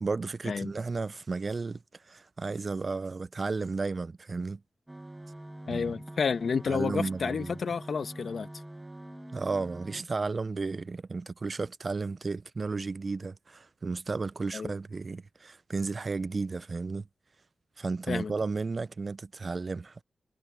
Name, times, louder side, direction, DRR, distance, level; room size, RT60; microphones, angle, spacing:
voice 1, 0.0-4.6 5.7-5.9 6.7-7.6 9.3-17.1 17.8-20.0, right 4 dB, 45° right, 0.5 m, -33 dB
sound 1, 4.9-10.0, right 1 dB, 15° right, 1.5 m, -45 dB
voice 2, 5.7-8.5 14.5-14.7 18.1-18.3, left 5 dB, 65° left, 1.4 m, -30 dB
cardioid pair, 70°, 0 cm